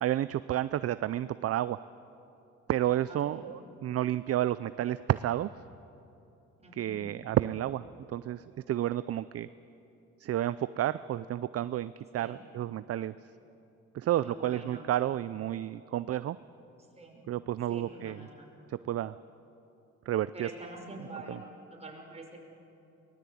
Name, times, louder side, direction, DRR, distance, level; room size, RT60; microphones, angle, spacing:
voice 1, 0.0-1.8 2.7-5.5 6.8-9.5 10.2-13.1 13.9-16.4 17.3-18.3 18.7-19.1 20.1-20.5 21.3-21.4, right 12 dB, 50° right, 15 dB, 0.5 m, -31 dB
voice 2, 6.6-7.0 12.2-12.4 14.2-14.9 17.0-17.2 17.7-18.5 20.3-21.5 21.8-22.4, right 2 dB, 20° right, 0 dB, 5.4 m, -46 dB
23.5 x 19.5 x 8.5 m, 2.9 s
cardioid pair, 90°, 30 cm